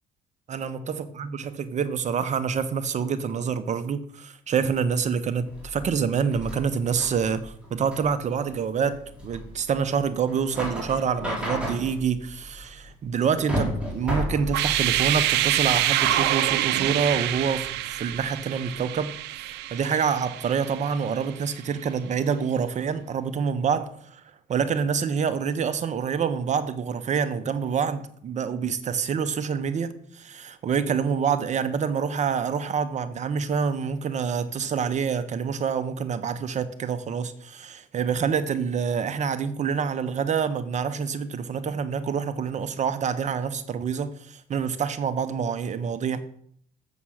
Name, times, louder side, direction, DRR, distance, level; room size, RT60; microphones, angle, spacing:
voice 1, 0.5-19.1 19.4-24.2 24.5-46.2, right 6 dB, 45° right, 0.9 m, -27 dB
sound 1, 5.5-17.0, equal, 5° right, 3.5 m, -34 dB
sound 2, 14.5-21.3, right 14 dB, 85° right, 0.6 m, -26 dB
7.2 x 7.2 x 6.4 m
cardioid pair, 110°, 17 cm